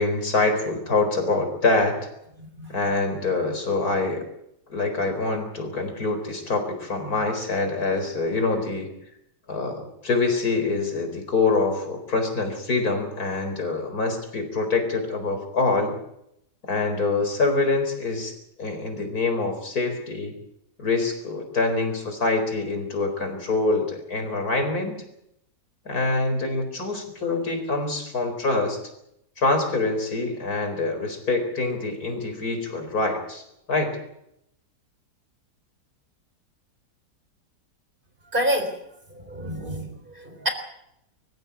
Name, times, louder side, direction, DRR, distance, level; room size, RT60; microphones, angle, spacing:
voice 1, 0.0-2.1 2.7-4.3 4.7-8.9 9.5-16.0 16.6-18.3 18.6-20.3 20.8-25.0 25.8-28.8 29.4-33.4 33.7-33.9, left 3 dB, 60° left, 6 dB, 4.8 m, -25 dB
voice 2, 38.3-38.8 39.1-40.5, equal, 30° right, 7 dB, 4.0 m, -28 dB
24.5 x 15.0 x 8.3 m, 0.78 s
omnidirectional pair, 1.8 m